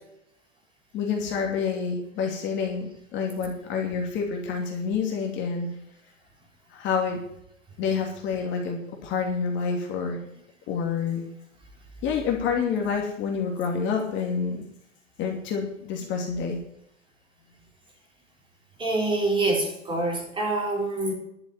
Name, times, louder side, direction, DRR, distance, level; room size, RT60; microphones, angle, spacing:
voice 1, 0.9-5.7 6.7-7.2 7.8-10.2 10.7-11.2 12.0-14.6 15.2-16.6, left 6 dB, 30° left, 1 dB, 2.7 m, -28 dB
voice 2, 18.8-21.1, right 2 dB, 15° right, 0 dB, 4.0 m, -26 dB
11.5 x 7.2 x 9.5 m, 0.74 s
hypercardioid pair, 125°, 39 cm